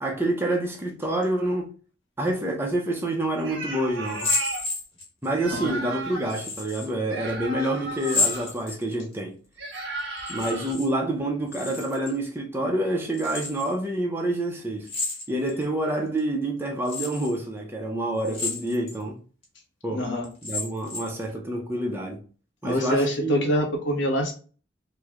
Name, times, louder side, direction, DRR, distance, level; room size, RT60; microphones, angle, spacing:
voice 1, 0.0-1.7 2.2-4.3 5.2-9.3 10.3-14.9 15.3-19.2 19.8-20.0 20.4-22.2 22.6-23.4, right 1 dB, 10° right, 0.6 m, -27 dB
sound 1, 3.4-4.7 5.3-6.4 7.1-8.5 9.6-10.7, right 2 dB, 60° right, 1.1 m, -35 dB
sound 2, 4.1-5.3 6.3-6.9 8.0-9.1 10.2-10.9 11.2-12.2 13.1-13.7 14.9-15.6 16.2-16.3 16.9-17.3 18.2-19.0 19.4-19.5 20.2-21.2, left 3 dB, 30° left, 1.1 m, -30 dB
voice 2, 19.9-20.3 22.6-24.3, equal, 75° left, 0.9 m, -25 dB
3.1 x 2.2 x 3.6 m
head